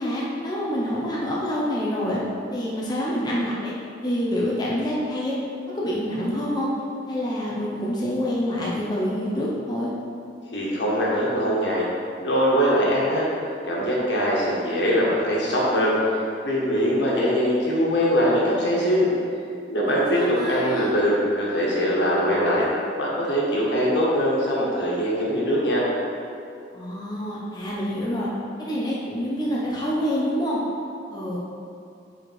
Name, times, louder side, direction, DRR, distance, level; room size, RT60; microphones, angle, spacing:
voice 1, 0.0-2.2 2.5-3.7 4.0-5.4 5.7-6.7 7.1-9.9 19.9-21.0 26.7-28.3 28.6-30.6 31.1-31.4, equal, 20° left, -6 dB, 0.6 m, -27 dB
voice 2, 10.5-11.9 12.2-13.2 13.7-15.9 16.4-19.1 19.7-22.7 22.9-25.9, equal, 70° left, -5 dB, 1.5 m, -22 dB
5.1 x 4.4 x 4.7 m, 2.5 s
head